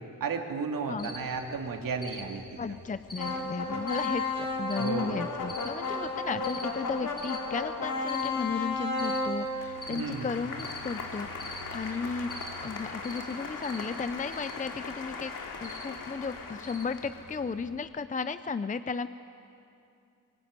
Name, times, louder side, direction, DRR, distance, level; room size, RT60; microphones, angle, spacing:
voice 1, 0.0-2.4 4.8-5.2 9.9-10.3, right 5 dB, 80° right, 3 dB, 2.8 m, -33 dB
Cricket, 1.0-17.8, equal, 40° left, 3.5 m, -47 dB
voice 2, 2.6-15.3 15.6-19.1, left 5 dB, 25° left, 12 dB, 0.5 m, -34 dB
sound 1, 3.2-17.3, left 3 dB, 85° left, 2.8 m, -35 dB
24.5 x 23.0 x 9.6 m, 2.6 s
wide cardioid pair, 130°, 33 cm